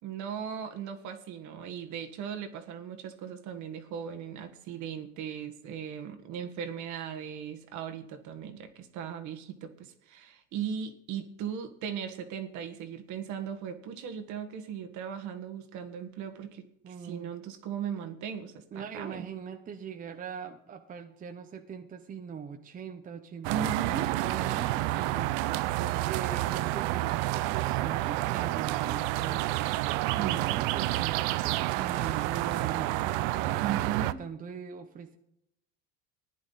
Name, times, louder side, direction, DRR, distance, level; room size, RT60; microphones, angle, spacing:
voice 1, 0.0-19.3 23.5-24.1 25.8-26.1 30.1-30.5 33.6-34.2, right 8 dB, 55° right, 7 dB, 1.6 m, -38 dB
voice 2, 16.8-17.3 18.7-25.4 25.9-35.2, right 7 dB, 25° right, 6 dB, 0.8 m, -41 dB
sound 1, 23.4-34.1, right 17 dB, 75° right, 0.6 m, -29 dB
15.5 x 10.5 x 4.1 m, 0.81 s
cardioid pair, 140°, 35 cm